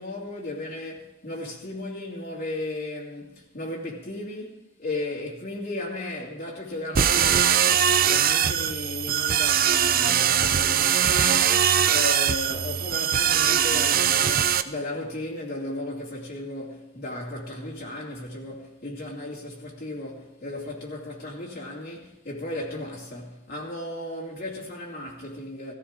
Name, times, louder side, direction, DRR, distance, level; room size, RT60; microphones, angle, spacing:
voice 1, 0.0-25.7, left 2 dB, 50° left, 2.6 m, -35 dB
sound 1, 7.0-14.6, right 9 dB, 45° right, 0.6 m, -21 dB
18.0 x 14.5 x 3.7 m
head